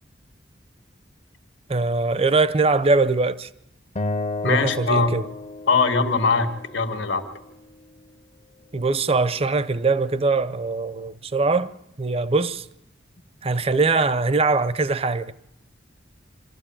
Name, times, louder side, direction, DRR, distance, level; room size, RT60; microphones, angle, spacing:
voice 1, 1.7-3.5 4.4-5.3 8.7-11.7 12.0-12.7 13.4-15.3, right 3 dB, 30° right, 0.7 m, -22 dB
Acoustic guitar, 4.0-7.2, left 2 dB, 35° left, 0.7 m, -32 dB
voice 2, 4.4-5.1 5.7-7.2, left 4 dB, 80° left, 1.8 m, -21 dB
26.0 x 13.0 x 8.8 m
head